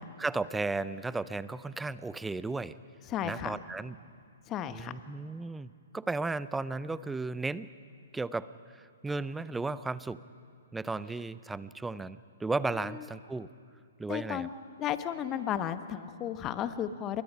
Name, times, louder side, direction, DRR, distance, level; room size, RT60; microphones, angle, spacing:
voice 1, 0.0-2.8 3.2-4.0 4.7-5.7 5.9-7.7 8.1-10.2 10.7-13.5 14.0-14.5, right 3 dB, 5° right, 16 dB, 0.5 m, -35 dB
voice 2, 3.1-3.5 4.5-4.9 12.7-13.0 14.1-14.5 14.8-17.2, left 10 dB, 25° left, 11 dB, 1.1 m, -34 dB
29.0 x 22.0 x 5.7 m, 2.3 s
figure-of-eight pair, 125°, 0 cm